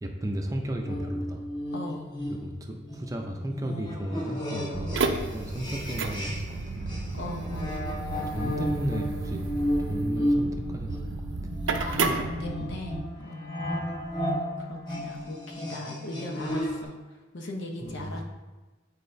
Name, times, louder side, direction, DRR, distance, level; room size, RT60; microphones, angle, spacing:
voice 1, 0.0-1.4 2.3-7.0 8.3-9.4 9.9-11.0 13.7-13.9 17.8-18.2, right 1 dB, 20° right, 2 dB, 0.5 m, -34 dB
sound 1, 0.9-6.6 6.9-16.9, equal, 25° left, 1.1 m, -33 dB
voice 2, 1.7-2.1 4.7-5.0 7.1-7.8 11.7-13.9 14.2-16.9 17.3-18.2, left 2 dB, 75° left, 1 dB, 0.9 m, -38 dB
sound 2, 4.7-13.0, right 3 dB, 85° right, 0.5 m, -32 dB
8.8 x 4.1 x 2.6 m, 1.2 s
head